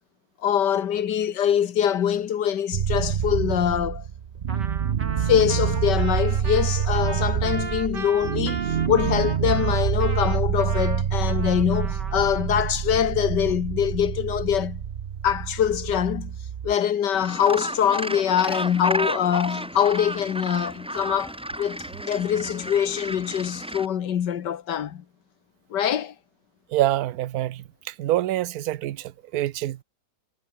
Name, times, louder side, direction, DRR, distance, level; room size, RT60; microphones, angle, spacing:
voice 1, 0.4-4.1 5.2-14.8 15.2-16.3 16.6-25.0 25.7-26.1, left 9 dB, 85° left, 1.9 m, -24 dB
sound 1, 2.7-16.7, right 8 dB, 50° right, 0.6 m, -27 dB
Trumpet, 4.5-12.5, right 4 dB, 90° right, 4.1 m, -38 dB
Gull seagull, 17.1-23.9, right 1 dB, 5° right, 0.6 m, -32 dB
voice 2, 26.7-29.8, right 14 dB, 65° right, 1.1 m, -26 dB
omnidirectional pair, 1.8 m